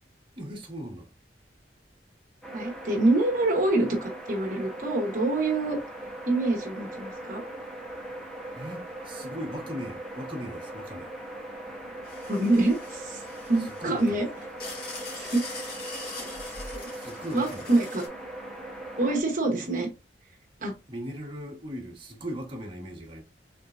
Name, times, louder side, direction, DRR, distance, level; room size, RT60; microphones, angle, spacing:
voice 1, 0.4-1.1 8.5-11.1 13.6-14.2 16.9-17.7 20.9-23.2, equal, 30° right, 1.2 m, -38 dB
sound 1, 2.4-19.2, right 1 dB, 5° left, 0.9 m, -40 dB
voice 2, 2.5-5.8 6.2-7.4 12.2-14.3 15.2-15.4 16.4-16.8 17.3-18.1 19.0-19.9 20.6-20.7, right 2 dB, 50° right, 1.0 m, -26 dB
sound 2, 12.0-18.1, left 3 dB, 55° left, 2.1 m, -42 dB
4.0 x 3.6 x 2.5 m
head